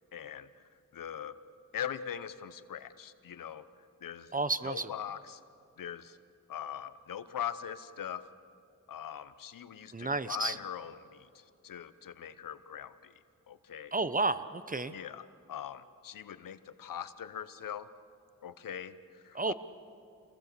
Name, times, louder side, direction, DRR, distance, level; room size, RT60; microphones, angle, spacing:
voice 1, 0.1-1.4 1.7-4.3 4.6-5.4 5.8-6.2 6.5-8.3 8.9-13.9 14.9-17.9 18.4-19.5, left 9 dB, 80° left, 13 dB, 1.0 m, -42 dB
voice 2, 4.3-4.9 9.9-10.6 13.9-14.9 19.3-19.5, right 3 dB, 25° right, 13 dB, 0.9 m, -31 dB
28.0 x 21.0 x 6.8 m, 2.5 s
cardioid pair, 60°, 33 cm